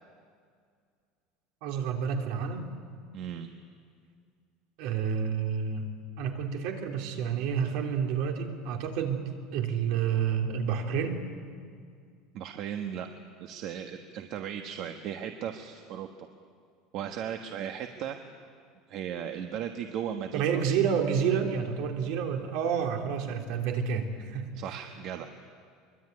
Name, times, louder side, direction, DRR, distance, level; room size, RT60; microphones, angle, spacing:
voice 1, 1.6-2.7 4.8-5.9 6.2-11.2 20.3-24.8, right 7 dB, 60° right, 3 dB, 3.3 m, -29 dB
voice 2, 3.1-3.5 12.3-13.1 13.4-16.3 16.9-18.2 18.9-20.8 24.5-25.3, right 9 dB, 45° right, 6 dB, 1.3 m, -36 dB
24.0 x 22.5 x 9.7 m, 2.2 s
cardioid pair, 165°, 0 cm